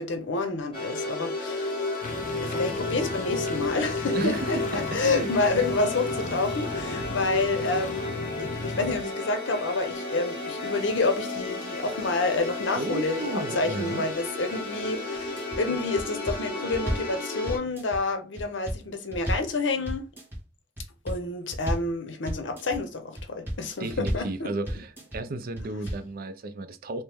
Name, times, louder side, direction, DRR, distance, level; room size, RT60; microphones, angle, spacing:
voice 1, 0.0-1.9 2.4-20.1 21.0-24.5, left 3 dB, 80° left, 0.7 m, -29 dB
sound 1, 0.7-17.6, left 2 dB, 30° left, 1.5 m, -32 dB
sound 2, 2.0-9.0, left 3 dB, 45° left, 0.4 m, -37 dB
voice 2, 4.1-4.7 5.0-5.3 12.8-14.0 23.8-27.0, right 2 dB, 50° right, 0.5 m, -33 dB
sound 3, 15.1-15.6 16.0-17.1 17.5-18.0 18.4-19.5 19.9-20.4 20.8-21.2 21.5-21.9 22.3-22.8 23.2-23.6 23.9-24.3 24.7-25.2 25.6-26.1, equal, 10° right, 1.5 m, -32 dB
3.2 x 3.0 x 3.4 m
head